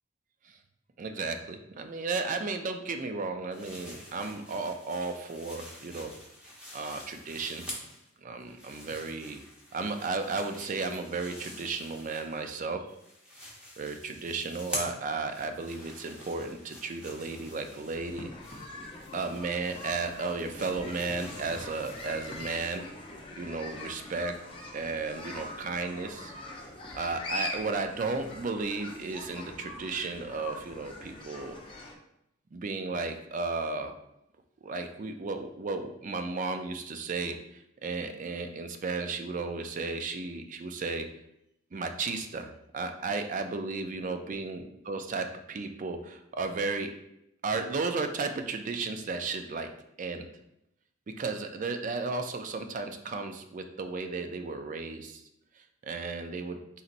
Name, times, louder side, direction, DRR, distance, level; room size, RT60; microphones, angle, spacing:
voice 1, 1.0-6.1 6.7-7.6 8.2-9.4 9.7-12.9 13.8-18.3 19.1-22.8 23.3-24.3 24.7-26.3 26.9-31.6 32.5-33.9 34.6-41.1 41.7-46.9 47.4-49.7 50.0-50.3 51.2-55.2 55.6-56.6, right 3 dB, 40° right, 7 dB, 0.4 m, -34 dB
sound 1, 3.5-8.1 8.4-12.6 12.9-22.8, equal, 5° right, 0.9 m, -46 dB
sound 2, 17.9-31.9, left 2 dB, 25° left, 0.6 m, -43 dB
4.1 x 4.0 x 2.5 m, 0.81 s
head